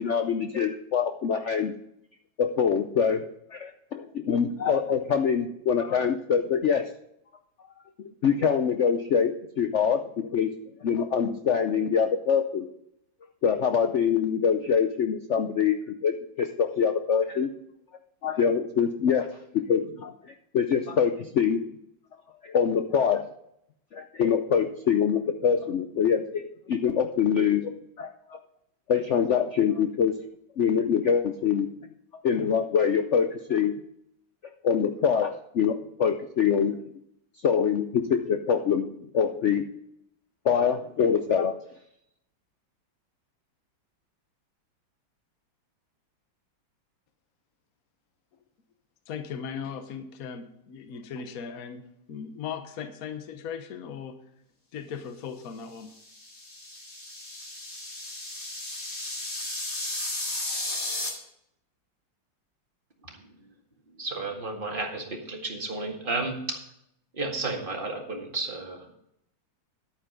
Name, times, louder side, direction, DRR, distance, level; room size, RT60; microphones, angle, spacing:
voice 1, 0.0-1.7 2.4-3.2 3.5-6.8 8.0-10.5 10.8-12.7 13.4-15.8 16.0-17.5 18.2-19.3 19.7-21.6 22.4-23.3 23.9-28.4 28.9-30.1 30.6-31.7 32.2-33.7 34.6-36.8 37.4-38.9 39.1-39.6 40.4-41.6, left 7 dB, 80° left, 7 dB, 0.6 m, -24 dB
voice 2, 49.1-54.2 54.7-55.9, left 7 dB, 55° left, 8 dB, 1.4 m, -38 dB
sound 1, 56.0-61.1, left 2 dB, 35° left, 2.8 m, -34 dB
voice 3, 63.0-63.5 63.9-66.6 67.1-68.9, right 3 dB, 25° right, 1 dB, 2.1 m, -33 dB
11.0 x 8.9 x 5.2 m, 0.76 s
omnidirectional pair, 2.1 m